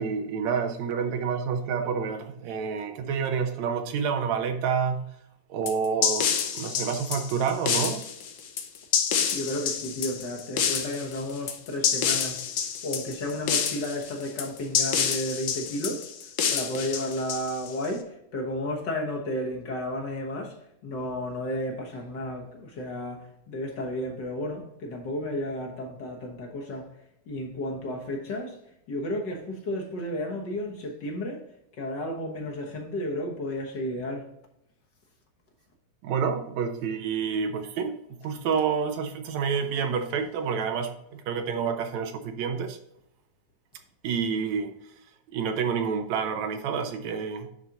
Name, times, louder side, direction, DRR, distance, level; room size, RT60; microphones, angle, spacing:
voice 1, 0.0-5.1 5.5-8.0 36.0-38.0 38.2-42.8 44.0-44.7 45.3-47.5, right 6 dB, 75° right, 2.0 m, -28 dB
sound 1, 5.7-17.9, left 7 dB, 80° left, 1.1 m, -28 dB
voice 2, 9.3-16.1 16.5-20.6 20.8-26.9 27.3-28.6 28.9-31.4 31.7-34.3, left 1 dB, 50° left, 1.4 m, -32 dB
10.5 x 4.1 x 3.8 m
omnidirectional pair, 3.3 m